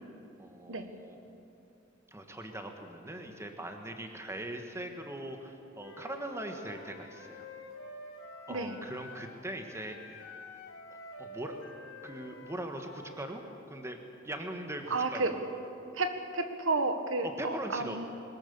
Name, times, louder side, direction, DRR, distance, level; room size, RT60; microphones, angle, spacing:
voice 1, 0.4-1.2 2.1-7.5 8.5-10.0 11.2-11.6 12.0-13.4 13.7-14.0 14.2-15.4 17.2-18.0, right 1 dB, 15° right, 5 dB, 1.5 m, -41 dB
Wind instrument woodwind instrument, 5.8-9.4 9.7-13.6, left 2 dB, 90° left, 3.9 m, -48 dB
voice 2, 14.9-15.3 15.9-18.1, right 3 dB, 70° right, 7 dB, 1.5 m, -31 dB
21.5 x 20.5 x 7.0 m, 2.7 s
head